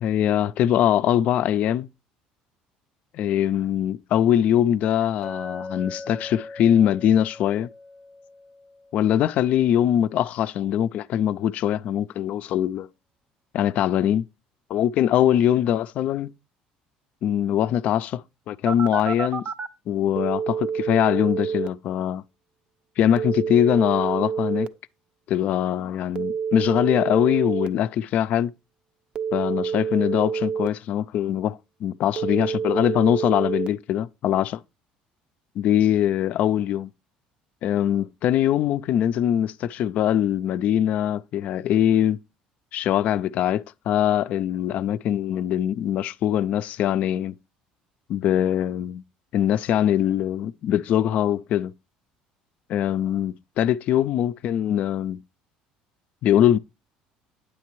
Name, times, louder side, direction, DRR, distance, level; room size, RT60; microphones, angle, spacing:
voice 1, 0.0-1.9 3.1-7.7 8.9-12.9 13.5-14.2 14.7-16.3 17.2-18.2 18.5-19.4 19.9-22.2 23.0-24.7 25.3-28.5 29.3-34.6 35.6-36.9 37.6-42.2 42.7-47.3 48.1-49.0 49.3-51.7 52.7-55.2 56.2-56.6, left 10 dB, 55° left, 0.4 m, -22 dB
Chink clink, 5.2-9.5, left 2 dB, 10° left, 0.7 m, -40 dB
Telephone, 18.7-19.7 20.2-21.7 23.2-24.7 26.2-27.7 29.2-30.7 32.2-33.7, right 6 dB, 40° right, 0.5 m, -27 dB
9.9 x 7.3 x 3.0 m
cardioid pair, 120°, 3 cm